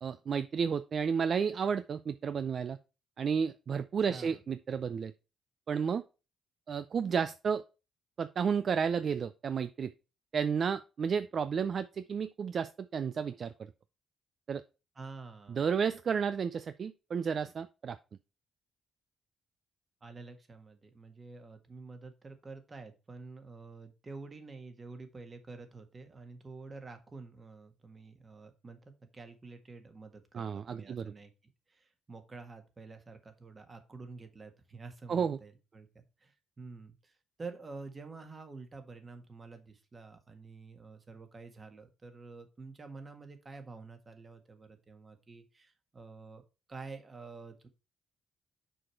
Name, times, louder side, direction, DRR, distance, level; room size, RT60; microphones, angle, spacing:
voice 1, 0.0-2.8 3.2-5.1 5.7-6.0 6.7-7.6 8.2-9.9 10.3-13.5 14.5-14.6 15.5-18.0 30.3-31.1 35.1-35.4, right 6 dB, 50° right, 12 dB, 0.4 m, -32 dB
voice 2, 4.1-4.4 14.9-15.6 20.0-31.3 31.7-46.4 46.7-47.7, right 3 dB, 30° right, 7 dB, 1.5 m, -48 dB
6.3 x 4.9 x 4.4 m, 0.30 s
cardioid pair, 90°, 0 cm